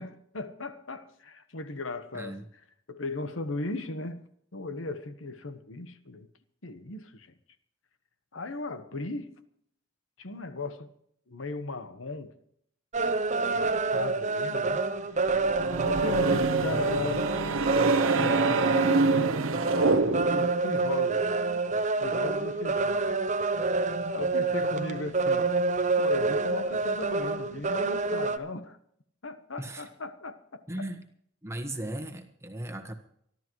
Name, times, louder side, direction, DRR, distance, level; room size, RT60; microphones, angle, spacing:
voice 1, 0.0-2.4 2.9-4.2 4.5-6.3 6.6-7.3 8.3-9.3 10.2-10.9 11.3-12.3 13.5-14.8 15.8-19.4 20.1-21.3 22.0-23.0 24.1-25.5 26.0-28.8 29.2-30.9, left 3 dB, 70° left, 1.2 m, -37 dB
voice 2, 2.1-2.4 29.6-29.9 30.7-31.0 31.4-32.9, right 1 dB, 15° right, 1.4 m, -37 dB
sound 1, 12.9-28.4, right 3 dB, 35° right, 0.8 m, -27 dB
sound 2, 15.3-20.6, right 3 dB, 80° right, 0.9 m, -27 dB
25.0 x 12.5 x 3.1 m
head